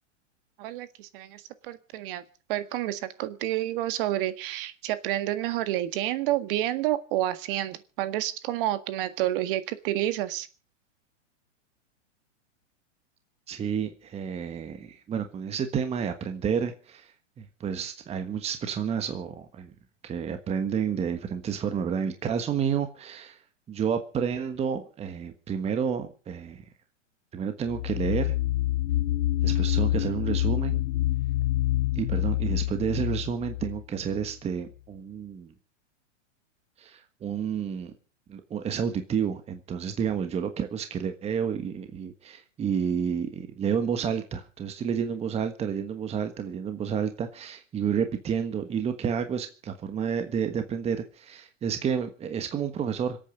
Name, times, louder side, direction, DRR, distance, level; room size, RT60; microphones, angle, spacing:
voice 1, 0.6-2.2 2.5-10.5, right 14 dB, 45° right, 1.8 m, -29 dB
voice 2, 13.5-17.1 17.4-19.7 20.0-23.4 23.7-26.6 27.3-28.3 29.4-30.8 31.9-35.5 36.8-37.9 38.3-53.2, right 7 dB, 15° right, 1.4 m, -30 dB
sound 1, 27.7-34.3, left 14 dB, 70° left, 0.6 m, -27 dB
25.5 x 8.9 x 5.2 m
hypercardioid pair, 135°, 37 cm